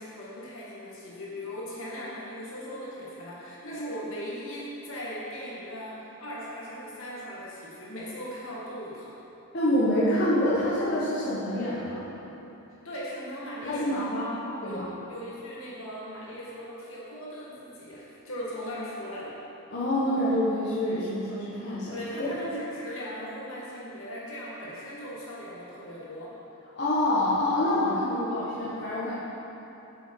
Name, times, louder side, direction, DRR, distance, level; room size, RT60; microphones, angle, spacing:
voice 1, 0.0-9.2 12.8-14.1 14.6-14.8 15.1-19.4 21.9-26.4, equal, 65° left, -6 dB, 2.1 m, -38 dB
voice 2, 9.5-12.0 13.6-14.9 19.7-22.3 26.7-29.1, left 1 dB, 50° left, -10 dB, 1.5 m, -27 dB
8.1 x 7.5 x 4.7 m, 3.0 s
head